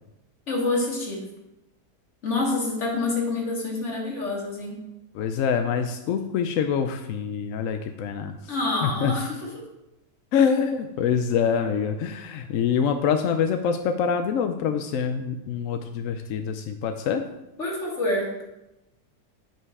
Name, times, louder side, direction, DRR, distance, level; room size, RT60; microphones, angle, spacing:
voice 1, 0.5-1.3 2.2-4.8 8.5-9.6 17.6-18.4, left 2 dB, 45° left, -2 dB, 2.2 m, -27 dB
voice 2, 5.1-8.3 8.8-9.1 10.3-17.2, left 7 dB, 70° left, 7 dB, 0.8 m, -25 dB
9.0 x 5.5 x 4.7 m, 0.94 s
omnidirectional pair, 1.8 m